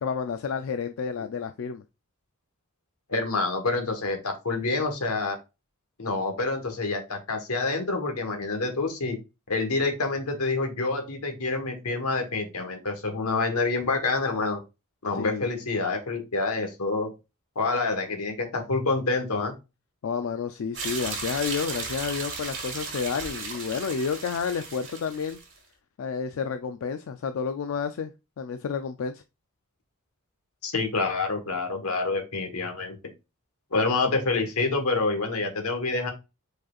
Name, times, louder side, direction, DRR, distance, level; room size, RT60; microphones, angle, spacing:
voice 1, 0.0-1.8 15.1-15.5 20.0-25.4 26.0-28.1 28.4-29.2, left 6 dB, 65° left, 0.3 m, -30 dB
voice 2, 3.1-5.4 6.0-9.2 9.5-14.6 15.0-17.1 17.5-19.5 30.6-33.0 33.7-36.1, left 3 dB, 85° left, 1.3 m, -27 dB
sound 1, 20.7-25.5, right 4 dB, 60° right, 1.5 m, -35 dB
5.0 x 4.3 x 2.4 m
head